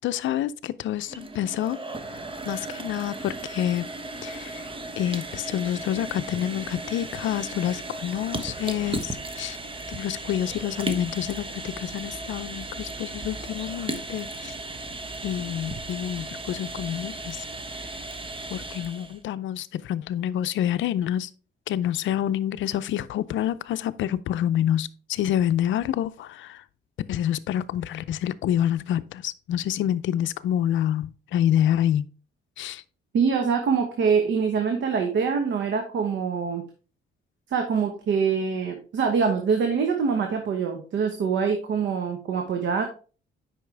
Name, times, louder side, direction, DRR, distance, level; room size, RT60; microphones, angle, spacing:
voice 1, 0.0-1.8 2.4-3.9 4.2-4.7 5.0-9.6 9.9-14.5 15.2-17.4 17.8-17.9 18.5-21.3 21.7-26.6 27.1-32.0 32.6-32.8, left 11 dB, 75° left, 0.5 m, -27 dB
sound 1, 0.9-19.2, right 2 dB, 25° right, 1.1 m, -36 dB
voice 2, 33.1-36.6 37.5-42.8, right 6 dB, 70° right, 1.2 m, -24 dB
8.3 x 5.6 x 3.4 m
cardioid pair, 90°, 20 cm